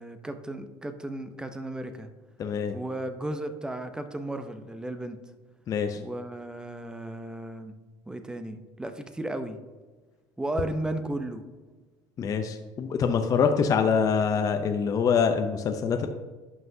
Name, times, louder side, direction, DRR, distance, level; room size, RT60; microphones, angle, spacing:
voice 1, 0.0-2.1 2.7-5.2 5.9-7.8 8.1-9.6 10.4-11.4, right 1 dB, 10° right, 8 dB, 0.6 m, -34 dB
voice 2, 2.4-2.8 5.7-6.0 12.2-16.1, left 6 dB, 35° left, 6 dB, 0.5 m, -25 dB
11.0 x 5.7 x 2.7 m, 1.3 s
cardioid pair, 125°, 10 cm